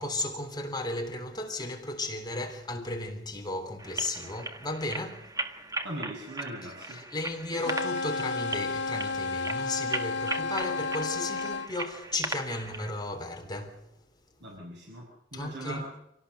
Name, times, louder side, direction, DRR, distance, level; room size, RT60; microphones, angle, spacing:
voice 1, 0.0-5.3 6.9-13.8 15.3-15.9, left 2 dB, 20° left, 3.4 m, -35 dB
sound 1, 3.8-12.9, right 2 dB, 20° right, 1.7 m, -38 dB
voice 2, 5.8-7.0 14.4-15.9, right 1 dB, 65° right, 6.4 m, -40 dB
sound 2, 7.6-11.7, left 3 dB, 70° left, 2.0 m, -32 dB
27.5 x 18.0 x 6.7 m
head